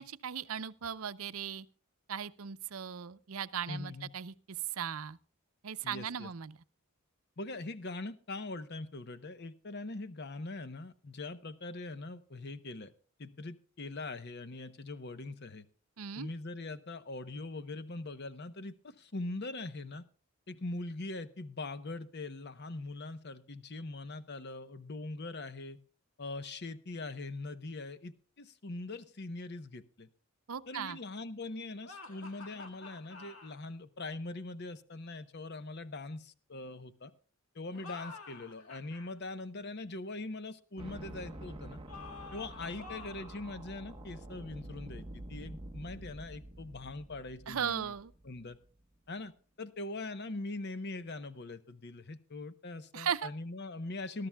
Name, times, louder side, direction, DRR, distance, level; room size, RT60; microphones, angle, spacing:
voice 1, 0.0-1.7 2.1-4.3 4.7-5.2 5.6-6.6 16.0-16.3 30.5-31.0 47.5-48.1 52.9-53.3, right 8 dB, 85° right, 0.6 m, -37 dB
voice 2, 3.7-4.1 5.8-6.3 7.4-12.9 13.2-15.7 16.2-20.0 20.5-25.8 26.2-30.1 30.7-37.1 37.5-41.8 42.3-47.9 48.2-48.6 49.1-49.3 49.6-54.3, left 2 dB, 50° left, 0.8 m, -42 dB
sound 1, 31.8-33.5 37.7-39.1 41.9-43.4, left 4 dB, 80° left, 1.8 m, -49 dB
sound 2, 40.8-48.8, right 1 dB, 25° right, 1.0 m, -48 dB
21.0 x 12.5 x 2.3 m
head